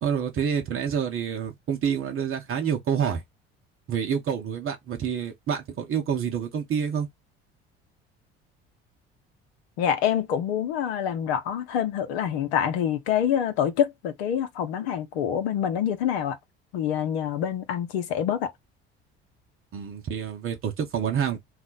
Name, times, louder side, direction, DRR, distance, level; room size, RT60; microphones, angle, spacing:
voice 1, 0.0-3.2 3.9-7.1 19.7-21.4, right 7 dB, 40° right, 0.9 m, -28 dB
voice 2, 9.8-16.4 16.7-18.5, left 9 dB, 75° left, 0.7 m, -26 dB
2.4 x 2.1 x 3.9 m
hypercardioid pair, 60°, 31 cm